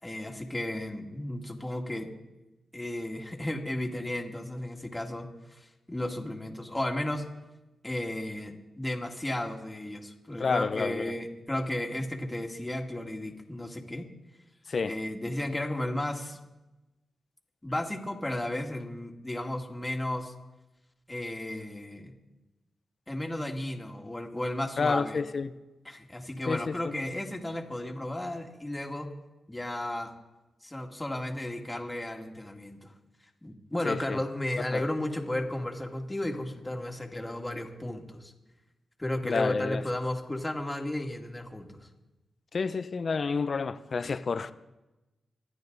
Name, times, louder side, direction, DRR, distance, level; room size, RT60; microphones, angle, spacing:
voice 1, 0.0-2.1 2.7-7.2 7.8-14.1 14.8-16.4 17.6-20.3 21.1-22.1 23.1-25.2 25.9-29.1 29.5-30.1 30.6-32.9 33.4-38.3 39.0-41.9, left 1 dB, 20° left, 2 dB, 2.3 m, -34 dB
voice 2, 10.4-11.1 14.7-14.9 24.8-25.5 26.5-26.9 33.8-34.2 34.7-34.8 39.2-39.8 42.5-44.5, left 5 dB, 55° left, 13 dB, 0.7 m, -29 dB
24.5 x 9.4 x 4.0 m, 1.0 s
cardioid pair, 50°, 0 cm